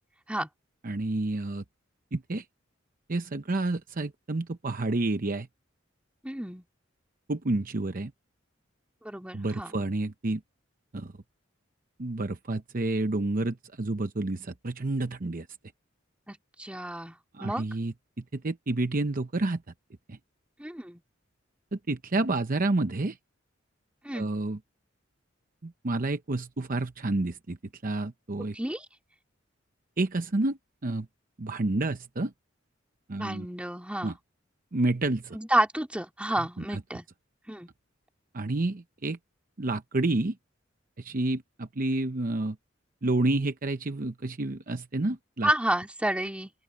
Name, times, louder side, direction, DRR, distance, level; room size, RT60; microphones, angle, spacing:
voice 1, 0.8-1.6 2.1-2.4 3.1-5.5 7.3-8.1 9.3-10.4 10.9-11.1 12.0-15.5 17.3-19.6 20.1-20.2 21.7-23.2 24.1-24.6 25.6-27.6 27.8-28.6 30.0-31.1 31.4-32.3 33.1-33.5 34.0-34.1 34.7-35.4 36.6-36.8 38.3-39.2 39.6-40.4 41.0-42.6 43.0-45.5, right 2 dB, 45° right, 0.8 m, -29 dB
voice 2, 6.2-6.6 9.0-9.7 16.3-17.6 20.6-21.0 24.0-24.3 28.5-28.8 33.2-34.1 35.3-37.0 37.5-37.7 45.4-46.5, right 1 dB, 5° right, 3.3 m, -30 dB
open air
head